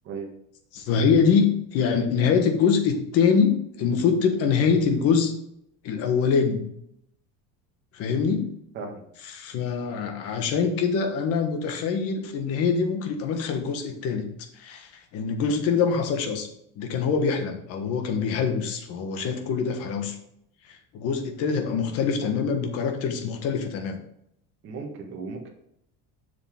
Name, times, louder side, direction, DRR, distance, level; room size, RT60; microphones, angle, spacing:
voice 1, 0.7-5.3 5.8-6.7 7.9-8.5 9.3-14.3 14.6-16.5 16.8-20.2 20.9-24.0, left 6 dB, 45° left, 5 dB, 1.3 m, -24 dB
voice 2, 8.7-9.0 24.6-25.5, right 4 dB, 35° right, 1 dB, 1.6 m, -36 dB
7.3 x 6.9 x 3.7 m, 0.75 s
cardioid pair, 180°, 34 cm